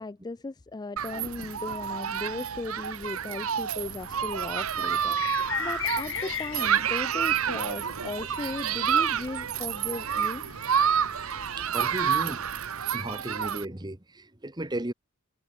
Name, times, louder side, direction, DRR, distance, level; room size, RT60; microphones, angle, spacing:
voice 1, 0.0-10.4, left 3 dB, 20° left, 0.4 m, -37 dB
Human group actions, 1.0-13.6, right 8 dB, 85° right, 0.9 m, -29 dB
sound 1, 3.8-12.7, left 8 dB, 60° left, 3.1 m, -40 dB
voice 2, 11.6-12.5 12.8-14.9, right 1 dB, 20° right, 1.4 m, -35 dB
head